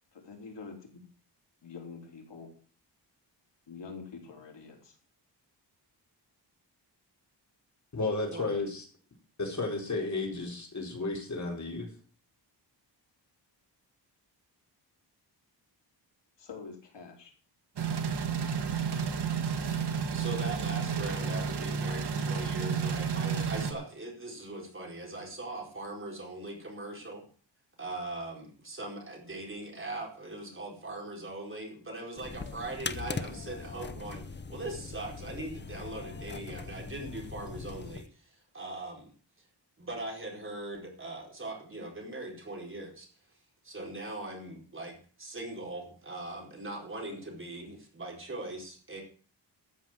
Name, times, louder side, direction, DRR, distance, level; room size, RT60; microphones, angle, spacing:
voice 1, 0.2-1.0 1.6-2.5 3.7-5.0 16.4-17.3, left 5 dB, 70° left, 2 dB, 4.1 m, -46 dB
voice 2, 7.9-8.9 9.4-11.9, left 3 dB, 40° left, 1 dB, 4.3 m, -33 dB
sound 1, 17.8-23.7, right 6 dB, 65° right, 1.7 m, -31 dB
voice 3, 20.1-27.2 27.8-39.1 39.8-43.1 43.6-49.0, right 2 dB, 30° right, 0 dB, 4.7 m, -40 dB
sound 2, 32.2-38.1, left 4 dB, 25° left, 0.7 m, -40 dB
13.5 x 7.4 x 7.6 m, 0.42 s
wide cardioid pair, 155°, 44 cm